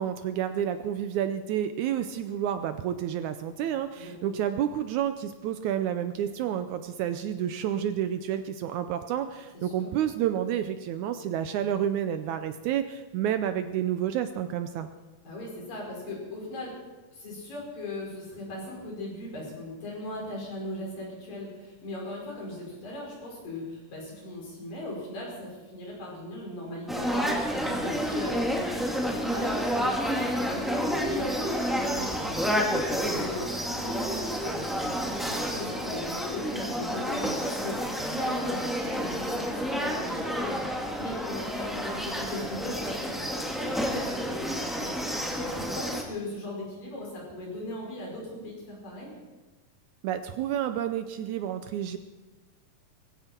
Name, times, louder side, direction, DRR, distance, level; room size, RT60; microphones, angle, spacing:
voice 1, 0.0-14.9 50.0-52.0, right 10 dB, 80° right, 9 dB, 1.7 m, -30 dB
voice 2, 4.0-4.3 9.6-9.9 15.2-16.8 17.1-34.6 35.3-44.9 45.4-49.2, left 1 dB, 75° left, -3 dB, 6.9 m, -38 dB
sound 1, 26.9-46.0, equal, ahead, 0.8 m, -30 dB
20.0 x 16.0 x 4.4 m, 1.2 s
omnidirectional pair, 4.0 m